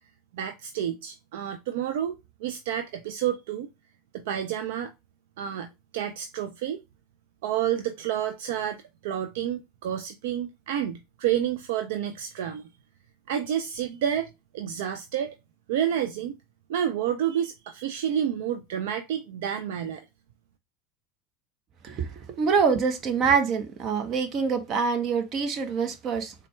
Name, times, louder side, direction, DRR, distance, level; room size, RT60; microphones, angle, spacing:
voice 1, 0.3-3.7 4.1-4.9 5.4-6.8 7.4-12.7 13.3-15.4 15.7-16.4 16.7-20.0, right 10 dB, 70° right, 0.4 m, -29 dB
voice 2, 21.8-26.3, right 5 dB, 45° right, 0.9 m, -25 dB
4.2 x 2.2 x 3.1 m
hypercardioid pair, 85°, 0 cm